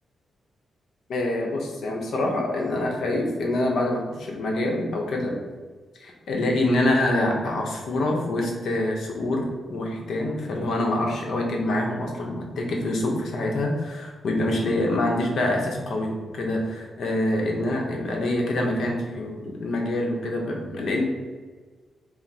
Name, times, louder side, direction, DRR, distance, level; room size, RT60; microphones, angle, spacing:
voice 1, 1.1-5.4 6.0-21.0, left 1 dB, 70° left, 0 dB, 0.8 m, -26 dB
4.0 x 2.1 x 4.5 m, 1.4 s
wide cardioid pair, 160°, 0 cm